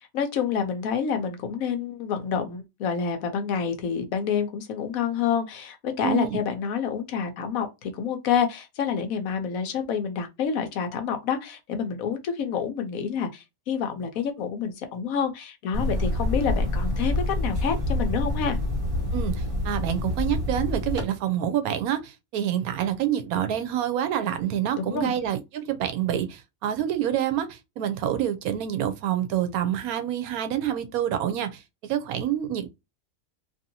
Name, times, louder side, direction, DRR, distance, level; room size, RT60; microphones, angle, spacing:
voice 1, 0.1-18.6 24.8-25.1, left 7 dB, 75° left, 1.1 m, -28 dB
voice 2, 6.0-6.4 19.1-32.7, right 10 dB, 85° right, 1.1 m, -27 dB
sound 1, 15.7-21.0, left 1 dB, 25° right, 1.2 m, -27 dB
2.9 x 2.7 x 2.6 m
omnidirectional pair, 1.5 m